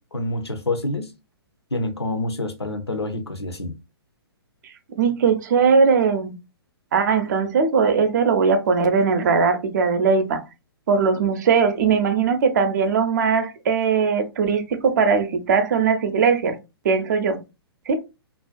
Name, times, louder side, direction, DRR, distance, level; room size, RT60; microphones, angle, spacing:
voice 1, 0.1-1.1 1.7-3.8, left 2 dB, 85° left, 0.6 m, -27 dB
voice 2, 5.0-6.3 6.9-10.4 10.9-16.5 16.8-17.4 17.9-18.0, right 5 dB, 45° right, 0.5 m, -19 dB
2.4 x 2.2 x 2.4 m
figure-of-eight pair, 120°, 13 cm